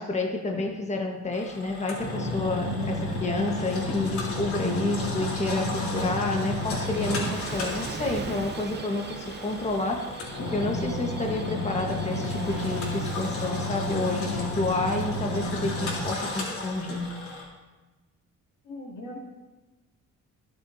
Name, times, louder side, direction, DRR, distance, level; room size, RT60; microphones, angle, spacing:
voice 1, 0.0-10.0 10.5-17.1, left 2 dB, 20° left, 1 dB, 1.5 m, -29 dB
Engine, 1.3-17.4, left 1 dB, 70° left, 3.7 m, -31 dB
Gull seagull / Waves surf, 5.6-16.1, right 5 dB, 35° right, 0.9 m, -42 dB
voice 2, 18.6-19.2, left 1 dB, 85° left, -4 dB, 3.2 m, -39 dB
21.0 x 7.3 x 2.8 m, 1.2 s
cardioid pair, 90°, 30 cm